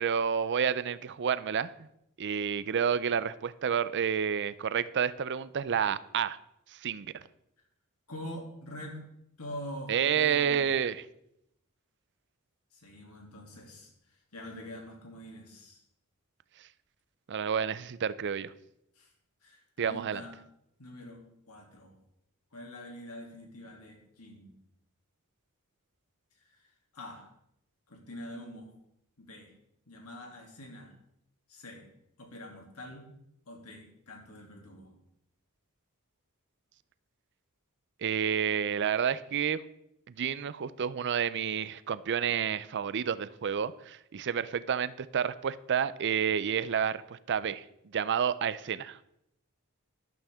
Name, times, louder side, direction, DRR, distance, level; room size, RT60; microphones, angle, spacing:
voice 1, 0.0-1.7 2.2-6.4 6.7-7.2 9.9-11.0 17.3-18.5 19.8-20.2 38.0-39.6 40.1-47.6 47.9-49.0, right 7 dB, 55° right, 16 dB, 0.5 m, -30 dB
voice 2, 8.1-9.0 9.4-10.6 12.7-15.8 19.0-19.1 19.4-20.3 20.8-21.9 22.5-24.5 26.5-27.3 27.9-28.7 29.2-29.5 29.9-30.9 31.5-31.9 32.2-33.1 33.5-35.0, left 1 dB, 90° left, 1 dB, 2.8 m, -45 dB
12.5 x 12.0 x 3.6 m, 0.79 s
head